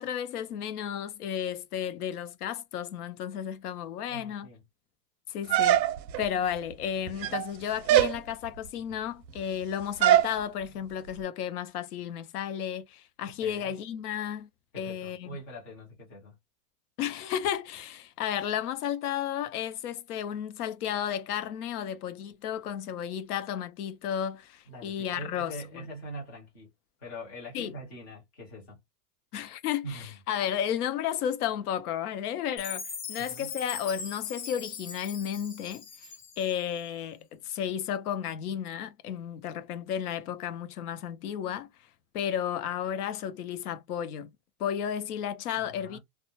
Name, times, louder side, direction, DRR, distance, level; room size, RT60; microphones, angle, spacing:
voice 1, 0.0-4.5 5.3-5.8 6.2-14.5 14.8-15.4 17.0-25.9 27.5-27.7 29.3-35.8 36.4-41.7 42.1-44.3 44.6-46.0, left 9 dB, 65° left, 0.6 m, -33 dB
voice 2, 4.1-4.6 13.4-13.7 14.7-16.4 24.7-26.7 27.0-28.8 29.8-30.1 33.3-33.5 45.6-46.0, equal, 15° left, 0.4 m, -43 dB
sound 1, 5.5-6.3 7.1-7.5 7.9-8.2 10.0-10.3, right 12 dB, 85° right, 0.6 m, -22 dB
Chime, 32.6-36.8, left 6 dB, 30° left, 0.9 m, -41 dB
2.1 x 2.0 x 2.9 m
supercardioid pair, 160°, 50 cm